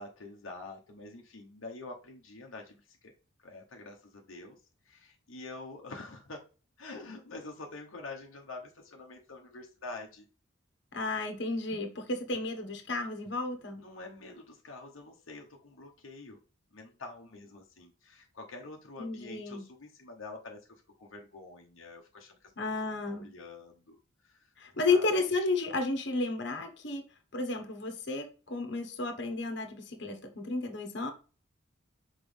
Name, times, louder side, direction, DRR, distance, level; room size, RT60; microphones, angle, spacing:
voice 1, 0.0-3.1 3.4-4.6 4.8-6.5 6.8-10.3 13.8-16.4 16.7-20.7 21.0-22.5 22.8-24.0 24.2-24.5 24.9-25.1, left 3 dB, 80° left, 1.0 m, -46 dB
voice 2, 10.9-13.8 19.0-19.6 22.6-23.3 24.6-27.0 27.3-31.1, left 3 dB, 60° left, 1.3 m, -32 dB
6.2 x 4.5 x 3.4 m
head